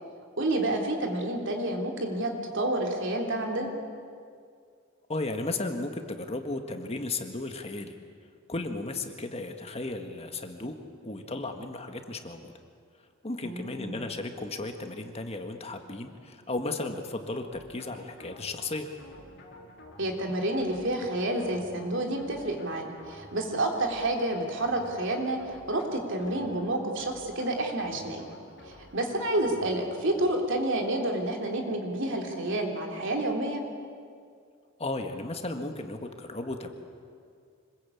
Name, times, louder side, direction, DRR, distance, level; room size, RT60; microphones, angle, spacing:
voice 1, 0.4-3.7 13.4-14.0 20.0-25.4 25.7-28.3 28.6-33.6, right 1 dB, 65° right, 2 dB, 3.3 m, -29 dB
voice 2, 5.1-7.9 8.5-10.8 11.0-12.5 13.2-18.9 34.8-36.7, left 2 dB, 30° left, 5 dB, 1.7 m, -35 dB
sound 1, 17.5-30.7, left 1 dB, 55° left, 4.3 m, -50 dB
26.0 x 21.0 x 8.6 m, 2.2 s
head